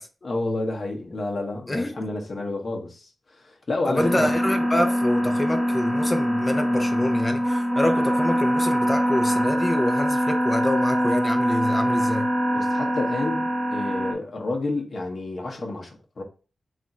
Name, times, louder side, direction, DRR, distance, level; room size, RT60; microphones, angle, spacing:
voice 1, 0.2-4.3 12.5-16.2, left 2 dB, 50° left, 0.9 m, -30 dB
voice 2, 1.7-2.1 3.9-12.3, left 1 dB, 15° left, 0.6 m, -27 dB
sound 1, 4.0-14.1, equal, 5° right, 0.9 m, -23 dB
3.4 x 2.5 x 4.1 m
wide cardioid pair, 95°, 0 cm